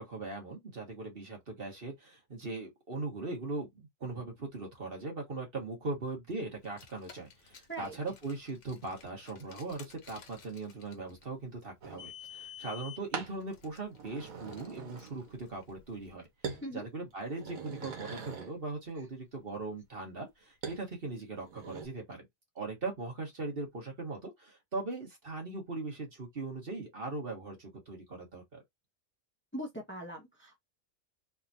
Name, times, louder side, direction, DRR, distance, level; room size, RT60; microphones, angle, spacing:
voice 1, 0.0-22.2 22.5-28.6, right 3 dB, 45° right, 1.6 m, -40 dB
Car, 6.6-16.1, left 8 dB, 60° left, 1.3 m, -53 dB
sound 1, 11.8-12.1 13.1-13.4 13.9-15.4 15.7-16.1 16.4-16.7 17.1-18.6 20.6-20.8 21.3-21.9, right 5 dB, 80° right, 1.6 m, -42 dB
voice 2, 29.5-30.6, right 1 dB, 10° left, 1.2 m, -41 dB
3.8 x 3.5 x 2.7 m
omnidirectional pair, 1.4 m